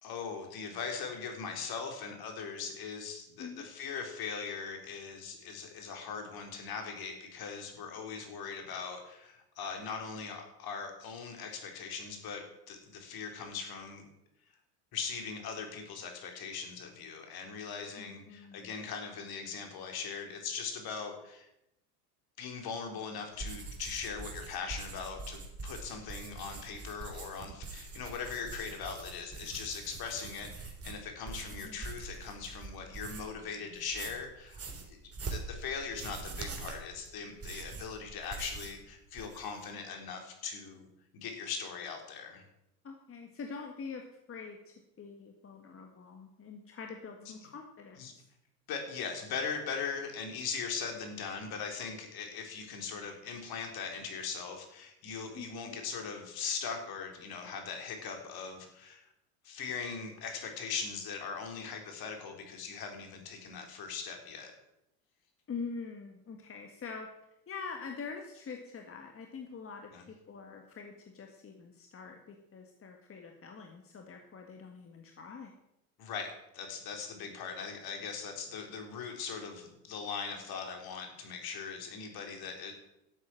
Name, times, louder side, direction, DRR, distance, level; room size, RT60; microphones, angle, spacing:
voice 1, 0.0-14.1 14.9-21.5 22.4-35.0 35.3-40.9 41.1-42.4 47.2-47.3 48.0-48.1 48.7-59.0 59.4-64.5 69.9-70.0 76.0-82.7, left 5 dB, 50° left, 4 dB, 4.0 m, -40 dB
voice 2, 18.0-18.7 31.5-31.8 42.8-48.0 55.4-55.8 65.5-67.1 67.5-75.5, left 5 dB, 30° left, 3 dB, 1.8 m, -45 dB
sound 1, 23.3-33.4 33.7-38.8 39.1-39.6, right 4 dB, 30° right, 3.6 m, -44 dB
12.0 x 8.4 x 7.7 m, 0.84 s
hypercardioid pair, 85°, 46 cm